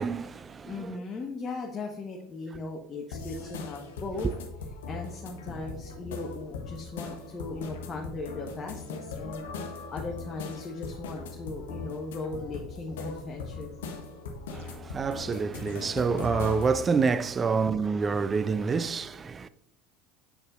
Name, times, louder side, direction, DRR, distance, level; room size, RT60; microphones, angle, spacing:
voice 1, 0.0-0.9 14.5-19.5, right 5 dB, 25° right, 0.3 m, -27 dB
voice 2, 0.7-4.3 4.9-13.8, left 3 dB, 30° left, 1.0 m, -38 dB
sound 1, 3.1-16.8, left 4 dB, 70° left, 0.9 m, -39 dB
8.2 x 6.5 x 2.5 m
figure-of-eight pair, 70°, 0 cm